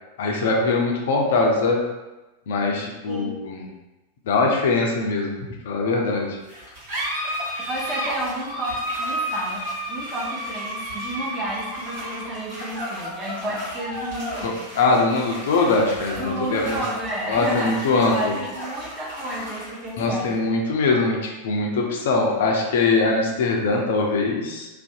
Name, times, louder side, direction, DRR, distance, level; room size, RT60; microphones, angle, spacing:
voice 1, 0.2-1.8 2.5-3.7 4.3-5.4 5.7-6.3 14.4-16.8 17.3-18.3 20.0-24.7, left 3 dB, 55° left, 0 dB, 0.4 m, -22 dB
sound 1, 6.4-23.4, equal, 55° right, 1.2 m, -33 dB
voice 2, 7.7-14.6 16.2-17.7 18.0-20.3, right 1 dB, 15° right, -5 dB, 0.7 m, -31 dB
2.5 x 2.1 x 2.6 m, 1.1 s
figure-of-eight pair, 90°, 0 cm